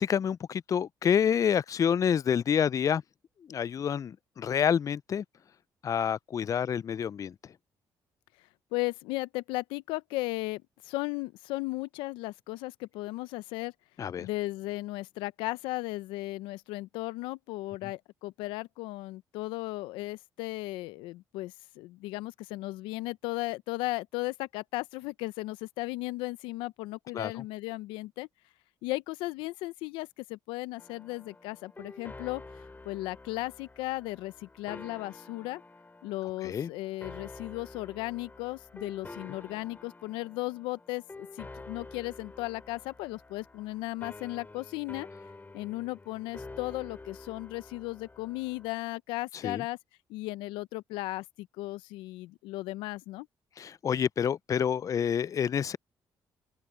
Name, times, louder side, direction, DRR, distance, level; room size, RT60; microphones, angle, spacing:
voice 1, 0.0-3.0 3.5-5.2 5.8-7.3 14.0-14.3 27.1-27.4 36.4-36.7 49.3-49.6 53.6-55.8, left 8 dB, 40° left, 0.3 m, -28 dB
voice 2, 8.7-13.7 14.2-28.3 28.8-32.4 32.8-35.6 36.0-45.1 45.5-49.8 50.1-53.3, left 20 dB, 85° left, 0.7 m, -36 dB
sound 1, 30.8-48.7, left 3 dB, 20° left, 2.5 m, -49 dB
open air
supercardioid pair, 65°, 8 cm